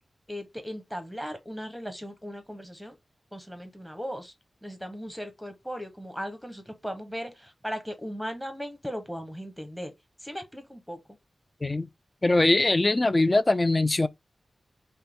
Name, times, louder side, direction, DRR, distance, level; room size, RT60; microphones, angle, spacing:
voice 1, 0.3-2.9 3.3-4.3 4.6-9.9 10.2-11.0, equal, ahead, 0.9 m, -37 dB
voice 2, 12.2-14.1, left 2 dB, 25° left, 0.3 m, -22 dB
5.5 x 2.2 x 3.5 m
wide cardioid pair, 130°, 0 cm